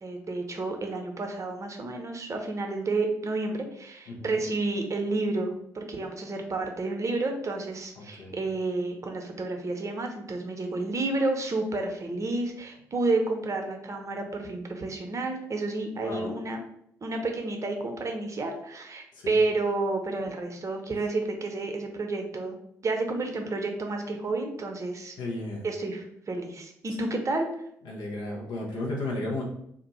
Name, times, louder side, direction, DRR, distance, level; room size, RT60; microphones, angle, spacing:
voice 1, 0.0-16.6 17.0-22.5 22.8-25.2 25.6-27.5, right 2 dB, 35° right, 3 dB, 0.8 m, -30 dB
voice 2, 4.1-4.4 8.0-8.4 15.9-16.3 19.1-19.4 25.2-25.7 27.8-29.4, left 2 dB, 60° left, -2 dB, 1.0 m, -34 dB
2.6 x 2.4 x 4.2 m, 0.71 s
figure-of-eight pair, 45°, 9 cm